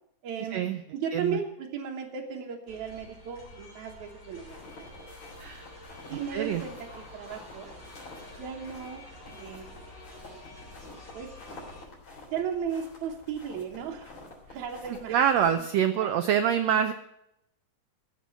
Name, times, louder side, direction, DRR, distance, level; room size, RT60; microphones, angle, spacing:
voice 1, 0.2-4.9 6.1-7.7 8.4-9.7 11.1-11.3 12.3-14.1 14.5-15.2 16.0-16.2, right 7 dB, 65° right, -1 dB, 2.3 m, -36 dB
sound 1, 2.7-11.9, left 1 dB, 30° left, 3.4 m, -48 dB
sound 2, 4.5-15.5, left 2 dB, 50° left, 4.7 m, -49 dB
voice 2, 6.3-6.6 15.1-16.9, right 9 dB, 85° right, 8 dB, 1.5 m, -25 dB
15.5 x 6.1 x 8.8 m, 0.82 s
omnidirectional pair, 3.9 m